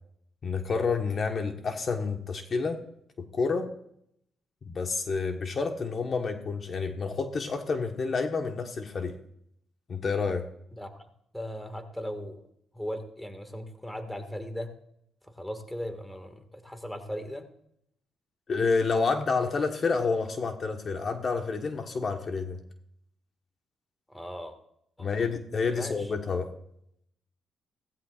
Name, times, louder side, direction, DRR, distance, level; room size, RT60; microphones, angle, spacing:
voice 1, 0.4-2.8 3.3-3.7 4.6-9.2 9.9-10.4 18.5-22.6 25.0-26.5, left 4 dB, 45° left, 4 dB, 1.4 m, -29 dB
voice 2, 10.7-11.0 11.3-12.4 12.7-14.7 15.4-17.5 24.1-24.6 25.0-25.2 25.7-26.1, equal, 5° left, 7 dB, 2.0 m, -38 dB
17.0 x 15.0 x 2.5 m, 0.72 s
cardioid pair, 90°, 0 cm